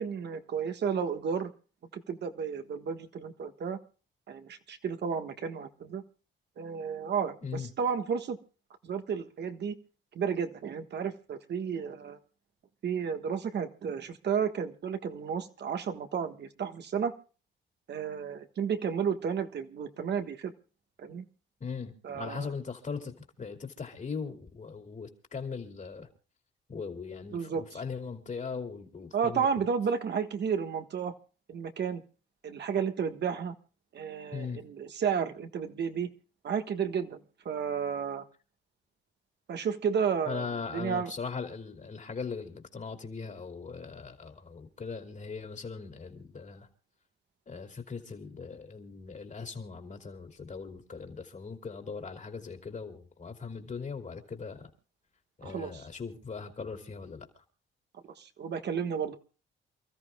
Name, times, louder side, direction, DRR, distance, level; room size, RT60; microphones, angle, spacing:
voice 1, 0.0-1.5 1.9-3.8 4.3-6.0 6.6-8.4 8.8-9.7 10.1-12.2 12.8-17.1 17.9-20.5 21.0-21.2 22.0-22.5 27.3-27.8 29.1-31.1 31.5-32.0 32.4-33.5 33.9-36.1 36.4-38.2 39.5-40.4 40.7-41.1 55.4-55.8 58.2-59.2, right 7 dB, 60° right, 1.5 m, -32 dB
voice 2, 21.6-26.1 26.7-29.6 34.3-34.6 40.2-46.7 47.5-54.7 55.4-57.4, left 5 dB, 40° left, 2.7 m, -39 dB
28.5 x 14.0 x 2.3 m
cardioid pair, 90°, 20 cm